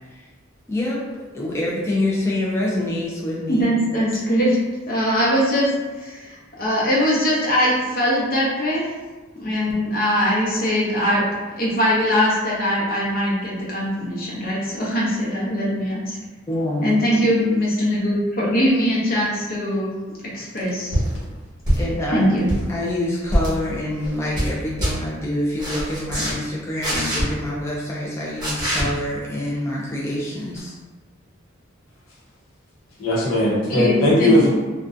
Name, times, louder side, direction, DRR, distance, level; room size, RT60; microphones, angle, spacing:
voice 1, 1.3-3.8 16.5-16.9 21.8-22.2 22.7-30.7, left 1 dB, 15° left, -5 dB, 0.3 m, -26 dB
voice 2, 3.5-4.6 4.9-5.7 6.0-8.9 9.4-11.2 11.6-16.2 16.8-19.9 20.3-21.0 22.1-22.5 33.7-34.5, equal, 45° left, -6 dB, 0.7 m, -21 dB
sound 1, 20.9-21.1 21.6-22.0 22.3-22.7 23.3-23.5 24.0-24.5 24.8-24.9 25.6-26.3 26.8-27.2 28.4-28.8 30.5-30.6, equal, 20° right, 1.1 m, -23 dB
voice 3, 33.0-34.5, left 1 dB, 90° left, -5 dB, 0.7 m, -18 dB
2.6 x 2.1 x 2.4 m, 1.3 s
head